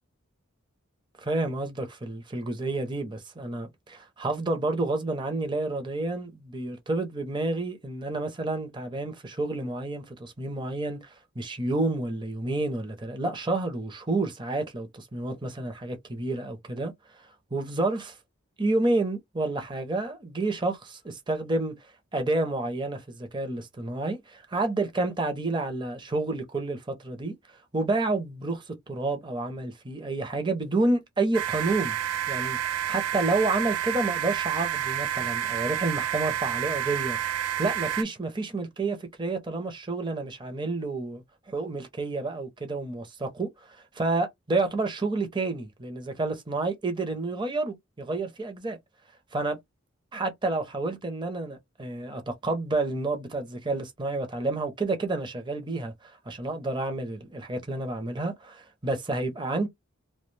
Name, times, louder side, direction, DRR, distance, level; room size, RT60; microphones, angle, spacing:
voice 1, 1.2-16.9 17.5-18.2 18.6-21.8 22.1-27.3 27.7-32.0 32.3-37.2 37.6-48.8 49.3-49.6 50.1-59.7, right 2 dB, 20° right, 0.6 m, -29 dB
sound 1, 31.3-38.0, right 10 dB, 85° right, 0.3 m, -29 dB
2.3 x 2.2 x 3.2 m
head